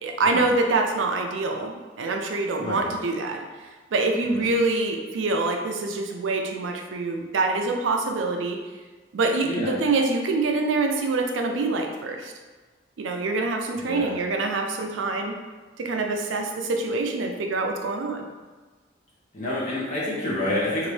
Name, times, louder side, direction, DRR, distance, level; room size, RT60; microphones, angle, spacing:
voice 1, 0.0-3.4 3.9-8.6 9.1-12.3 13.0-15.4 15.8-18.2, right 3 dB, 85° right, 3 dB, 0.4 m, -25 dB
voice 2, 9.4-9.8 13.8-14.1 19.3-20.9, left 1 dB, 40° left, -7 dB, 1.2 m, -28 dB
3.9 x 2.6 x 3.2 m, 1.4 s
head